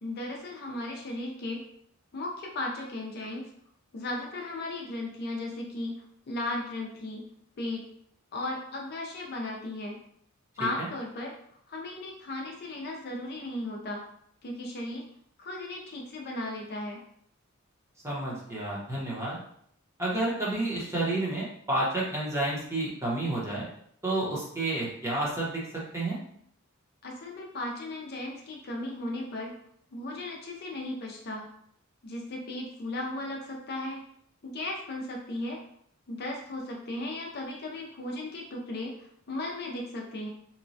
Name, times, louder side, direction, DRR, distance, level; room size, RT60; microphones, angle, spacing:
voice 1, 0.0-1.7 2.1-3.5 3.9-7.3 7.6-7.9 8.3-10.0 10.6-11.4 11.7-14.0 14.4-15.1 15.4-17.0 27.0-29.6 29.9-31.5 32.0-34.0 34.4-35.7 36.1-40.3, left 2 dB, 50° left, 0 dB, 0.5 m, -36 dB
voice 2, 18.0-19.4 20.0-23.7 24.0-25.6 25.9-26.2, right 2 dB, 15° right, -5 dB, 0.8 m, -30 dB
3.0 x 2.2 x 2.6 m, 0.68 s
head